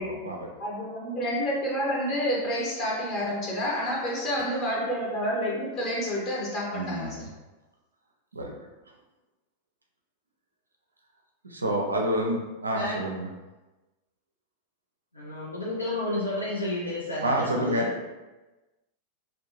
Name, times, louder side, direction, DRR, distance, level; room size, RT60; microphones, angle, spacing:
voice 1, 0.0-0.5 6.7-7.2 8.3-8.5 11.4-13.3 17.2-17.9, right 1 dB, 80° right, 1 dB, 0.4 m, -28 dB
voice 2, 0.6-7.3, equal, 35° left, -4 dB, 0.6 m, -29 dB
voice 3, 15.1-17.9, left 1 dB, 80° left, -6 dB, 0.5 m, -31 dB
2.6 x 2.2 x 2.9 m, 1.1 s
figure-of-eight pair, 90°, 0 cm